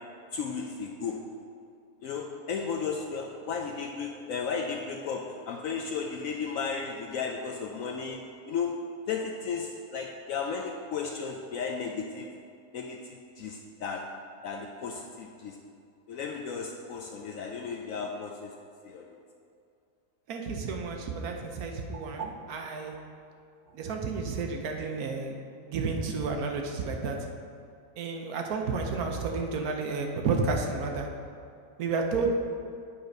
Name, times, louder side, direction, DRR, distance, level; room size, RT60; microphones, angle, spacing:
voice 1, 0.3-1.2 2.0-8.2 8.5-8.7 9.1-12.3 12.7-14.0 14.4-15.5 16.1-18.5 18.8-19.1, left 5 dB, 70° left, 1 dB, 0.8 m, -34 dB
voice 2, 20.3-22.9 23.7-25.4 25.7-27.3 28.0-31.1 31.8-32.3, right 4 dB, 65° right, 2 dB, 1.1 m, -31 dB
8.6 x 4.1 x 5.1 m, 2.4 s
omnidirectional pair, 1.8 m